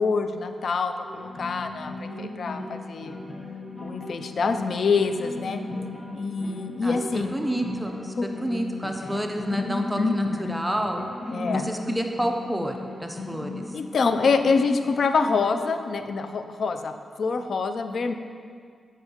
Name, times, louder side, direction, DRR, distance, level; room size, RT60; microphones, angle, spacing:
voice 1, 0.0-3.2 3.8-5.6 6.1-7.4 8.2-8.3 9.0-9.2 10.0-10.5 11.3-11.7 13.7-16.9 17.2-18.1, left 4 dB, 70° left, 8 dB, 0.3 m, -26 dB
sound 1, 0.9-15.9, left 2 dB, 50° left, 1.3 m, -36 dB
voice 2, 6.8-11.0 11.5-12.7 13.0-13.7, equal, 10° right, 4 dB, 0.5 m, -29 dB
7.7 x 4.5 x 2.9 m, 2.1 s
cardioid pair, 50°, 0 cm